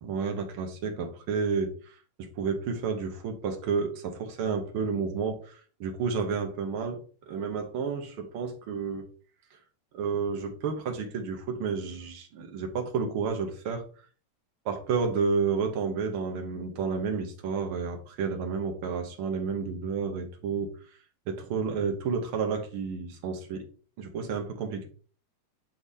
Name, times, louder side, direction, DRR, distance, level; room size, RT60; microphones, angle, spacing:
voice 1, 0.0-1.7 2.2-5.5 5.8-7.0 7.3-9.1 9.9-13.8 14.6-20.7 21.3-23.6 24.0-24.9, right 5 dB, 75° right, 3 dB, 1.2 m, -30 dB
9.8 x 3.6 x 2.7 m, 0.41 s
omnidirectional pair, 3.7 m